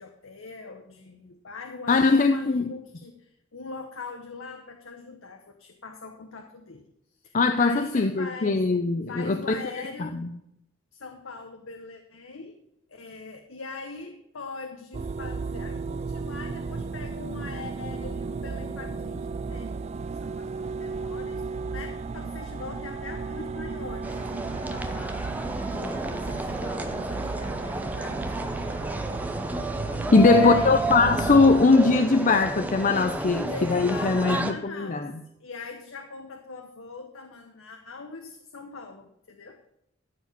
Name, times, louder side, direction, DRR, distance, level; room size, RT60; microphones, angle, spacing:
voice 1, 0.0-6.8 7.2-8.6 9.1-10.2 10.9-12.6 12.9-19.7 20.1-25.4 25.7-28.7 30.2-30.9 33.2-35.1 35.4-39.6, left 4 dB, 80° left, 1.0 m, -41 dB
voice 2, 1.9-2.7 7.3-9.6 10.0-10.3 30.1-35.1, left 3 dB, 40° left, 0.5 m, -21 dB
sound 1, 14.9-31.6, right 4 dB, 30° right, 0.3 m, -34 dB
sound 2, 24.0-34.5, right 1 dB, 10° right, 0.7 m, -31 dB
13.5 x 4.8 x 6.8 m
head